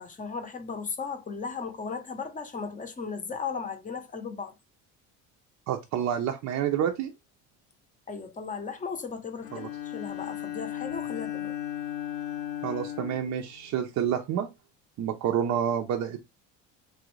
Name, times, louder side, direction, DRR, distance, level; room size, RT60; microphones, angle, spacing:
voice 1, 0.0-4.5 8.1-11.5, left 5 dB, 20° left, 0.6 m, -36 dB
voice 2, 5.7-7.1 9.5-9.7 12.6-14.5 15.0-16.2, right 9 dB, 50° right, 0.5 m, -28 dB
Bowed string instrument, 9.4-14.0, left 12 dB, 75° left, 0.7 m, -36 dB
3.1 x 2.5 x 3.0 m
cardioid pair, 115°, 36 cm